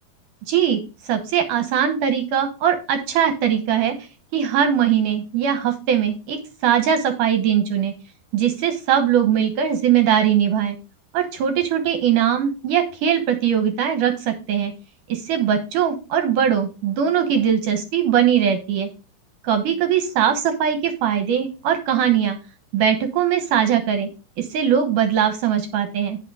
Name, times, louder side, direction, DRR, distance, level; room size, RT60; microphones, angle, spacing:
voice 1, 0.5-0.8 1.1-4.0 4.3-7.9 8.3-10.8 11.1-14.7 15.1-18.9 19.4-22.4 22.7-24.1 24.4-26.2, right 9 dB, 65° right, 7 dB, 2.3 m, -20 dB
8.7 x 5.7 x 4.8 m, 0.31 s
omnidirectional pair, 4.4 m